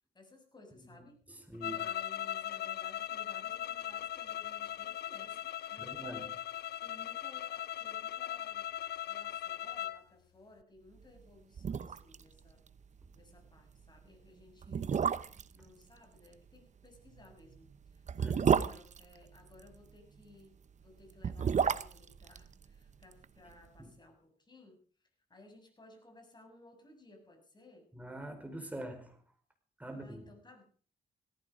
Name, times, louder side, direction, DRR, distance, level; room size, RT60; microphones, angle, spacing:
voice 1, 0.1-1.2 1.6-6.3 6.8-8.7 9.1-12.6 13.1-15.0 15.5-20.5 20.8-24.8 25.3-27.9 29.9-30.6, left 2 dB, 25° left, 4 dB, 7.2 m, -58 dB
voice 2, 1.3-1.8 5.8-6.2 18.2-18.5 23.8-23.9 27.9-29.2 29.8-30.3, right 1 dB, 10° right, 5 dB, 4.8 m, -44 dB
sound 1, 1.6-10.0, left 12 dB, 80° left, 0.7 m, -39 dB
sound 2, 11.2-11.3 11.6-12.2 12.5-12.6 13.0-13.2 13.9-14.0 14.6-15.6 17.1-19.7 21.0-23.2 23.5-23.6, right 7 dB, 45° right, 0.9 m, -31 dB
18.0 x 15.0 x 5.0 m, 0.42 s
cardioid pair, 95°, 17 cm